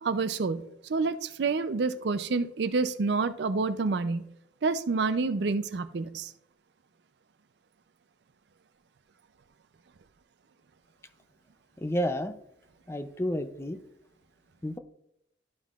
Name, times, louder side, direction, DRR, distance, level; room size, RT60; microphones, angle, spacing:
voice 1, 0.0-4.3 4.6-6.3, right 4 dB, 60° right, 13 dB, 0.4 m, -28 dB
voice 2, 11.8-12.4 12.9-13.8 14.6-14.8, equal, 15° left, 10 dB, 0.4 m, -30 dB
12.0 x 5.5 x 2.4 m, 0.78 s
head